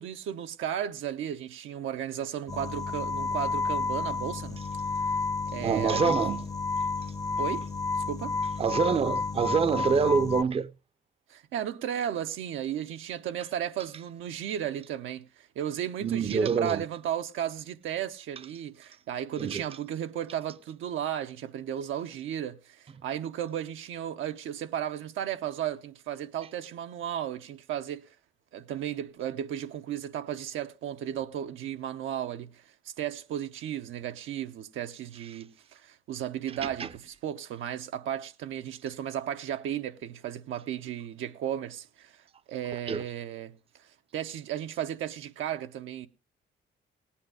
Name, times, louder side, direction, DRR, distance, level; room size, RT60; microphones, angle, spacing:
voice 1, 0.0-4.6 5.0-5.1 5.5-6.1 7.4-7.7 7.9-8.4 11.3-28.1 28.5-32.6 33.0-43.5 44.1-46.1, right 10 dB, 80° right, 0.8 m, -34 dB
sound 1, 2.5-10.4, left 4 dB, 15° left, 0.6 m, -31 dB
voice 2, 5.6-6.4 8.6-10.7 16.0-16.8 19.4-19.6 36.8-36.9 42.9-43.0, right 5 dB, 30° right, 0.6 m, -26 dB
17.5 x 8.7 x 4.8 m
cardioid pair, 90°, 20 cm